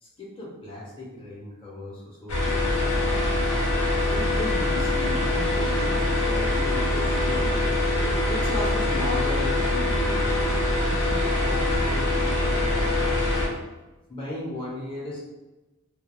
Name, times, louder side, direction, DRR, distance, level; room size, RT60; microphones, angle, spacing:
voice 1, 0.0-3.5 4.1-7.8 8.3-10.4 10.8-13.4 14.1-15.2, left 1 dB, 25° left, -5 dB, 0.6 m, -36 dB
sound 1, 2.3-13.5, left 2 dB, 80° left, 0.7 m, -24 dB
2.2 x 2.2 x 3.0 m, 1.1 s
head